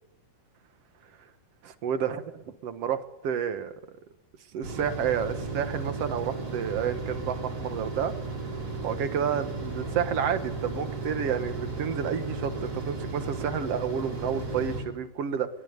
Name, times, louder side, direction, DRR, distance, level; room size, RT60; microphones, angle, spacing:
voice 1, 1.6-3.7 4.5-8.1 8.8-15.5, right 8 dB, 55° right, 10 dB, 2.1 m, -30 dB
sound 1, 4.6-14.8, right 3 dB, 25° right, 4.4 m, -35 dB
21.5 x 21.0 x 9.6 m, 0.94 s
omnidirectional pair, 3.7 m